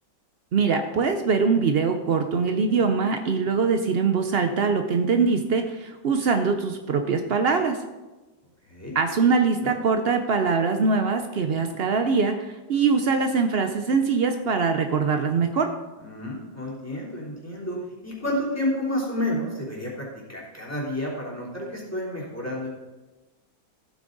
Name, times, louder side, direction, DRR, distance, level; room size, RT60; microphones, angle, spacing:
voice 1, 0.5-7.8 8.9-15.7, right 5 dB, 85° right, 6 dB, 0.5 m, -23 dB
voice 2, 16.0-22.7, left 1 dB, 10° left, -5 dB, 3.1 m, -30 dB
14.5 x 8.6 x 3.9 m, 1.1 s
omnidirectional pair, 1.9 m